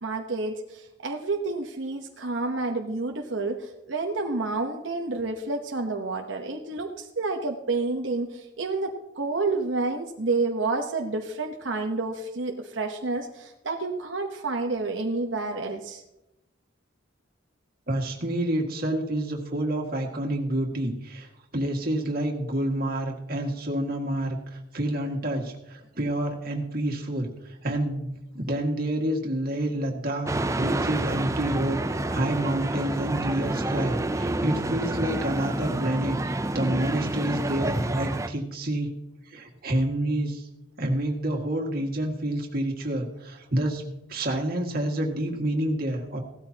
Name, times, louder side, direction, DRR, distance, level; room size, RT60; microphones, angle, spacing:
voice 1, 0.0-16.0, right 3 dB, 85° right, 2 dB, 1.1 m, -29 dB
voice 2, 17.9-38.9 39.3-40.5 40.8-43.8 44.1-46.2, right 1 dB, 50° right, 1 dB, 2.0 m, -28 dB
sound 1, 30.3-38.3, right 2 dB, 15° right, 0.5 m, -28 dB
17.0 x 13.0 x 2.9 m, 0.91 s
head